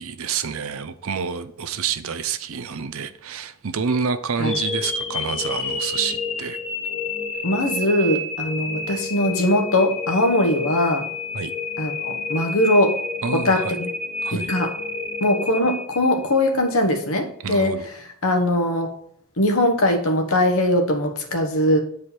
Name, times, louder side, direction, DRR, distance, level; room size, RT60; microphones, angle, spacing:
voice 1, 0.0-6.6 11.3-11.5 13.2-13.8 14.2-14.5 17.4-17.9, right 6 dB, 65° right, 11 dB, 0.6 m, -28 dB
sound 1, 4.4-16.5, left 3 dB, 30° left, 0.9 m, -29 dB
voice 2, 7.4-11.0 11.8-12.9 13.3-13.9 14.3-14.7 15.2-17.7 18.2-18.9 19.4-21.8, left 1 dB, 70° left, 4 dB, 1.3 m, -21 dB
8.5 x 4.8 x 4.4 m, 0.66 s
head